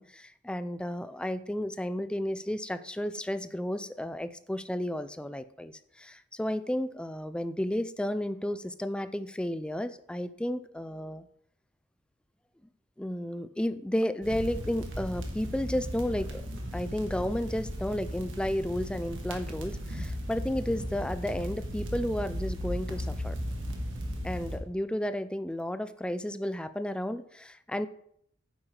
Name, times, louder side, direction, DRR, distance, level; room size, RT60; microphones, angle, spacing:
voice 1, 0.0-11.2 13.0-16.4 16.7-23.4 24.2-27.9, left 1 dB, 5° left, 12 dB, 0.4 m, -32 dB
sound 1, 14.2-24.6, equal, 75° right, 1.6 m, -36 dB
9.4 x 7.3 x 3.3 m, 0.69 s
head